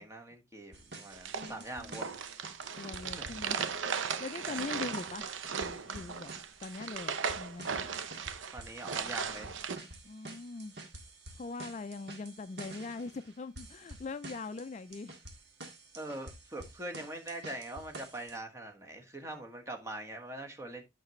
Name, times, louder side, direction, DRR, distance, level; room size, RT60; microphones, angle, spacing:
voice 1, 0.0-2.2 3.0-3.3 4.5-4.6 8.5-9.5 15.9-20.8, right 1 dB, 15° right, 1.3 m, -43 dB
sound 1, 0.7-18.4, right 2 dB, 60° right, 1.8 m, -50 dB
sound 2, 1.1-9.8, right 6 dB, 80° right, 0.7 m, -37 dB
voice 2, 1.3-2.0 2.8-3.6 4.2-5.3 5.5-6.3 6.6-7.7 10.0-10.7 11.3-15.2, left 3 dB, 35° left, 0.3 m, -42 dB
8.8 x 6.0 x 3.1 m
head